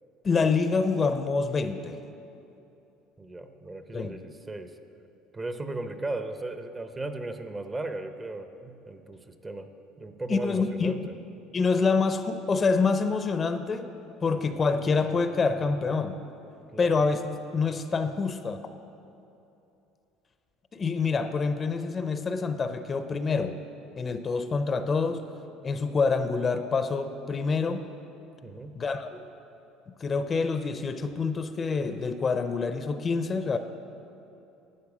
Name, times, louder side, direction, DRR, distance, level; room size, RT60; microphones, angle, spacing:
voice 1, 0.2-2.0 3.9-4.2 10.3-11.0 11.5-13.9 14.2-16.2 16.8-18.6 20.7-23.6 24.0-25.2 25.6-27.9 28.7-29.2 30.0-33.6, left 4 dB, 30° left, 9 dB, 0.5 m, -26 dB
voice 2, 3.2-4.7 5.3-9.7 10.0-11.1 16.7-17.0 28.4-28.8, right 2 dB, 20° right, 8 dB, 0.7 m, -36 dB
12.0 x 8.8 x 4.9 m, 2.8 s
supercardioid pair, 105°, 0 cm